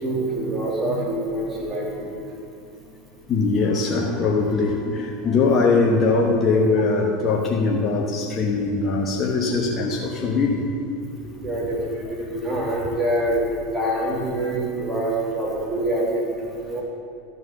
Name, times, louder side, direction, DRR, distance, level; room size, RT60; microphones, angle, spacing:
voice 1, 0.0-2.1 11.4-13.5 13.7-16.2 16.6-16.8, right 1 dB, 20° right, -5 dB, 3.0 m, -25 dB
voice 2, 3.3-10.7, left 3 dB, 35° left, -1 dB, 1.2 m, -21 dB
13.0 x 4.8 x 7.9 m, 2.5 s
hypercardioid pair, 95°, 0 cm